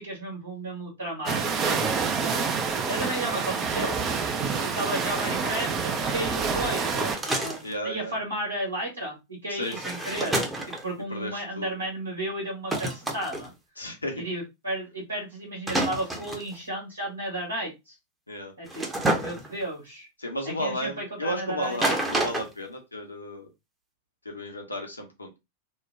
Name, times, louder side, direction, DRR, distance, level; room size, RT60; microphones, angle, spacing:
voice 1, 0.0-1.9 2.5-4.2 4.6-13.5 14.1-17.9 18.6-18.8 19.1-20.1 20.4-21.8, right 1 dB, 75° right, -2 dB, 1.5 m, -33 dB
sound 1, 1.3-7.2, right 5 dB, 30° right, 0.5 m, -27 dB
sound 2, 4.9-5.0 6.7-7.7 9.6-10.9 12.7-13.5 15.7-16.5 18.7-19.6 21.6-22.5, right 1 dB, 10° right, 0.8 m, -29 dB
voice 2, 7.6-8.2 9.5-9.8 11.1-11.7 13.8-14.2 18.3-18.5 20.2-23.5 24.2-25.4, left 1 dB, 80° left, 2 dB, 0.8 m, -34 dB
3.1 x 2.2 x 3.2 m, 0.23 s
figure-of-eight pair, 90°, 0 cm